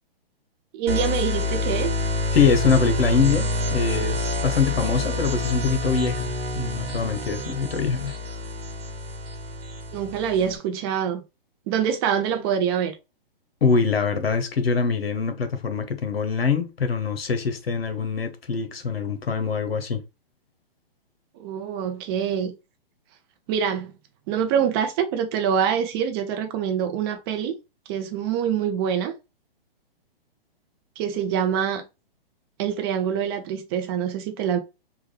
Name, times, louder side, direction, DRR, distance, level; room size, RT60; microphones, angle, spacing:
voice 1, 0.7-1.9 9.9-11.2 11.7-12.9 21.4-22.5 23.5-23.9 24.3-27.5 27.9-29.1 31.0-31.8 32.6-34.6, right 8 dB, 25° right, 0.6 m, -25 dB
sound 1, 0.9-10.6, left 2 dB, 75° right, 1.0 m, -27 dB
voice 2, 2.3-8.2 13.6-20.0, left 5 dB, 85° left, 1.0 m, -24 dB
3.6 x 2.3 x 3.2 m
hypercardioid pair, 140°, 29 cm